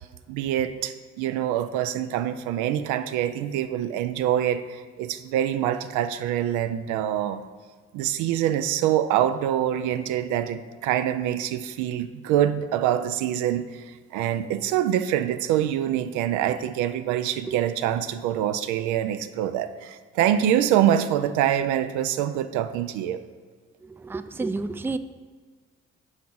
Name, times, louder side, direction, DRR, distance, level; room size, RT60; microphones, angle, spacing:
voice 1, 0.3-7.4 7.9-23.2, right 11 dB, 80° right, 10 dB, 0.4 m, -25 dB
voice 2, 23.8-25.0, right 3 dB, 10° right, 11 dB, 0.3 m, -30 dB
6.3 x 4.6 x 5.5 m, 1.5 s
hypercardioid pair, 50°, 30 cm